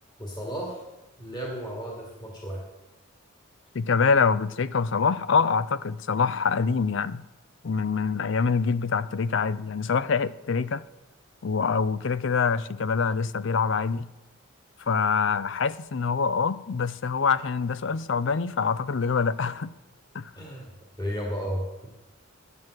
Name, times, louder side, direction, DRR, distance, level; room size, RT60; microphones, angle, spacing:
voice 1, 0.2-0.8 1.2-2.6 20.4-20.7 21.0-21.9, equal, 20° left, 2.2 m, -33 dB
voice 2, 3.7-7.2 7.6-10.8 11.4-14.1 14.9-19.7 20.1-20.3, left 5 dB, 60° left, 0.5 m, -25 dB
10.5 x 9.3 x 7.9 m
head